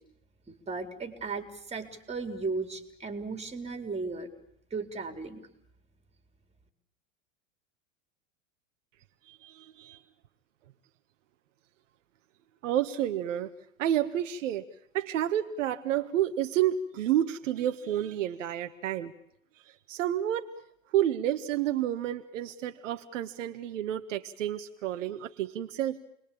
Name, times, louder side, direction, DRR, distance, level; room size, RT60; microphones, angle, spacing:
voice 1, 0.5-4.3 4.7-5.4, right 4 dB, 15° right, 7 dB, 4.3 m, -36 dB
voice 2, 9.3-10.0 12.6-13.5 13.8-14.6 14.9-19.1 19.9-20.5 20.9-26.0, right 11 dB, 70° right, 7 dB, 1.6 m, -30 dB
29.5 x 21.5 x 8.8 m, 0.74 s
hypercardioid pair, 100°, 39 cm